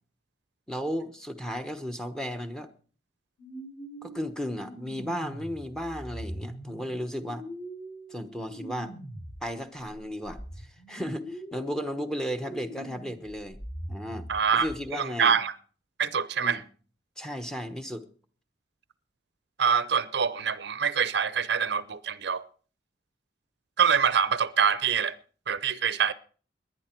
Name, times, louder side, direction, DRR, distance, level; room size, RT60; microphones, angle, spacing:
voice 1, 0.7-2.7 4.0-7.5 8.1-8.9 9.4-13.6 13.9-15.4 16.4-16.6 17.2-18.0, equal, 5° left, 1.1 m, -34 dB
sound 1, 3.4-9.4 9.8-14.8, right 1 dB, 35° left, 4.4 m, -42 dB
voice 2, 14.3-14.7 14.9-15.5 16.0-16.6 19.6-22.4 23.8-25.1 25.5-26.1, right 6 dB, 65° right, 0.7 m, -25 dB
19.5 x 10.5 x 4.5 m
head